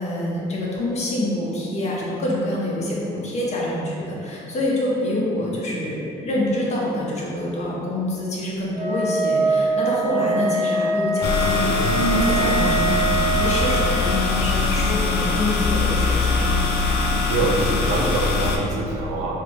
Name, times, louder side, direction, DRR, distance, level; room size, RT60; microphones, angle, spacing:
voice 1, 0.0-13.1 13.4-16.5, left 1 dB, 40° left, -5 dB, 0.7 m, -26 dB
Wind instrument woodwind instrument, 8.7-14.0, right 3 dB, 40° right, 0.7 m, -23 dB
sound 1, 11.2-18.6, left 3 dB, 75° left, 0.4 m, -22 dB
voice 2, 17.1-19.4, right 3 dB, 90° right, -1 dB, 0.5 m, -25 dB
3.3 x 2.0 x 3.1 m, 2.6 s
cardioid pair, 110°, 17 cm